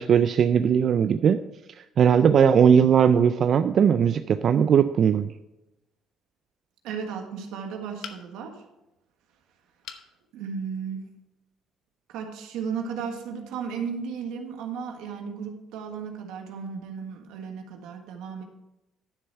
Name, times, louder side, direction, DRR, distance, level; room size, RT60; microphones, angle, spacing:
voice 1, 0.0-1.4 1.8-5.3, right 7 dB, 50° right, 10 dB, 0.4 m, -19 dB
voice 2, 6.8-8.6 10.3-11.1 12.1-18.4, right 6 dB, 85° right, 3 dB, 1.5 m, -34 dB
sound 1, 8.0-8.6 9.8-10.1 10.7-10.8 11.1-11.2, left 8 dB, 70° left, 1.0 m, -41 dB
11.5 x 6.9 x 4.5 m, 0.95 s
cardioid pair, 95°, 0 cm